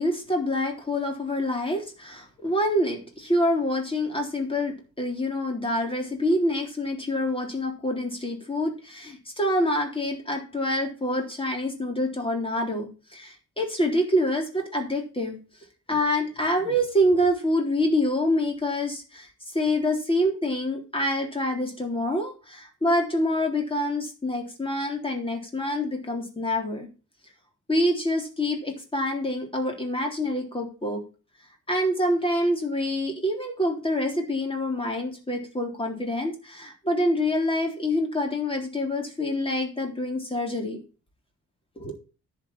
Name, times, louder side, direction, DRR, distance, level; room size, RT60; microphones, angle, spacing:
voice 1, 0.0-15.4 15.9-26.9 27.7-31.0 31.7-40.8 41.8-42.0, left 1 dB, 15° left, 2 dB, 3.6 m, -26 dB
11.0 x 6.1 x 7.4 m, 0.34 s
wide cardioid pair, 140°, 30 cm